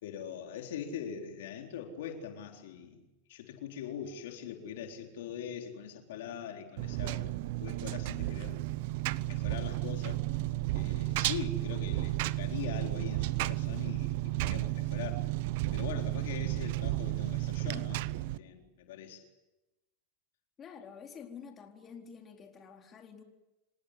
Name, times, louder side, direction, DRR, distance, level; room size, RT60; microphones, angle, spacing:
voice 1, 0.0-8.6 9.2-10.2 10.7-15.3 15.7-19.2, left 8 dB, 75° left, 3 dB, 4.0 m, -42 dB
Engine, 6.8-18.4, right 18 dB, 65° right, 0.8 m, -33 dB
voice 2, 20.6-23.2, left 6 dB, 30° left, 2 dB, 4.2 m, -49 dB
28.0 x 17.5 x 9.8 m, 1.0 s
hypercardioid pair, 110°, 0 cm